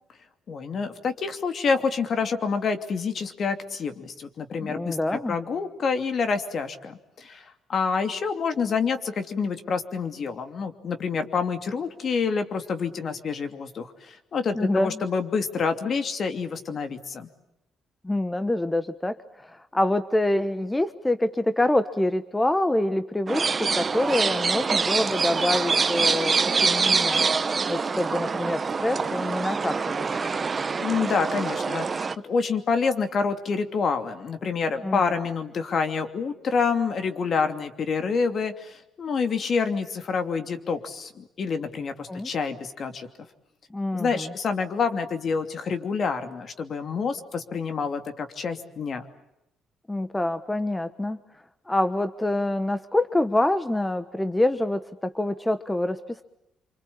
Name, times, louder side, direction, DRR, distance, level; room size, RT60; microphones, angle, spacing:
voice 1, 0.5-17.3 30.8-43.1 43.9-49.1, left 5 dB, 55° left, 7 dB, 2.8 m, -27 dB
voice 2, 4.6-5.4 14.5-15.0 18.0-27.2 27.7-30.3 34.8-35.0 42.1-42.3 43.7-44.3 49.9-51.2 51.7-56.2, left 1 dB, 10° left, 11 dB, 1.2 m, -26 dB
sound 1, 23.3-32.2, right 5 dB, 35° right, 1.0 m, -25 dB
27.0 x 25.5 x 8.7 m, 0.86 s
cardioid pair, 90°, 0 cm